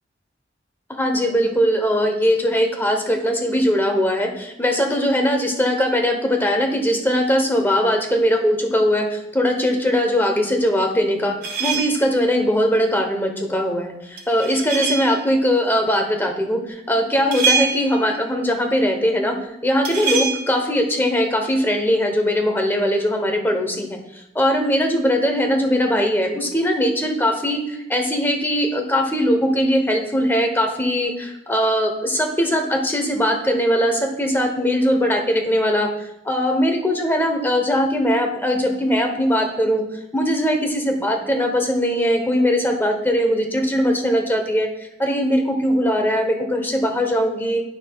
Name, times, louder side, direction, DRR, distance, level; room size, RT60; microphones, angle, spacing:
voice 1, 0.9-19.4 19.6-24.0 24.3-35.9 36.2-39.8 40.1-44.7 45.0-47.6, equal, 10° left, 4 dB, 0.9 m, -20 dB
sound 1, 11.4-12.2 14.2-15.2 17.3-18.2 19.8-20.4, right 5 dB, 55° right, 1.6 m, -24 dB
11.5 x 5.7 x 2.3 m, 0.90 s
head